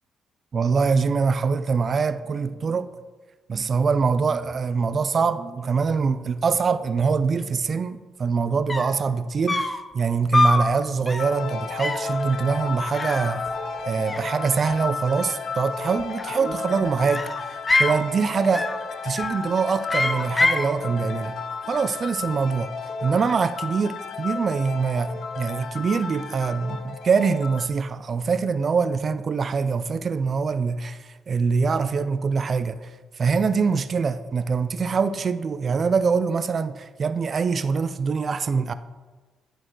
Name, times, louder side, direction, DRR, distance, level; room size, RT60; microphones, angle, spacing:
voice 1, 0.5-2.9 3.5-13.5 13.9-18.7 19.0-21.4 21.7-22.7 23.0-32.9 33.2-38.7, right 5 dB, 45° right, 0.4 m, -24 dB
sound 1, 8.4-8.5 8.7-9.0 9.5-9.9 10.3-10.7 11.1-11.4 11.8-12.1 12.9-13.8 14.1-14.8 16.0-16.6 17.1-18.0 18.5-18.9 19.2-19.5 19.9-20.7, left 2 dB, 20° left, 0.6 m, -25 dB
sound 2, 11.2-27.7, left 5 dB, 65° left, 0.6 m, -33 dB
11.0 x 4.5 x 4.6 m
cardioid pair, 90°, 0 cm